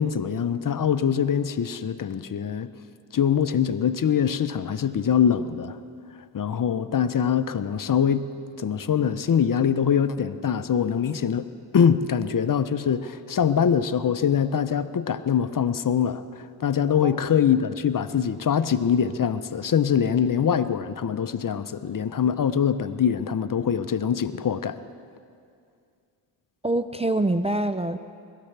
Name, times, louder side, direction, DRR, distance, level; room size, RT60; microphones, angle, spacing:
voice 1, 0.0-2.7 3.1-5.8 6.1-24.8, left 8 dB, 40° left, 12 dB, 0.8 m, -23 dB
voice 2, 26.6-28.0, right 2 dB, 15° right, 7 dB, 0.5 m, -25 dB
23.5 x 13.5 x 3.4 m, 2.3 s
supercardioid pair, 45°, 49 cm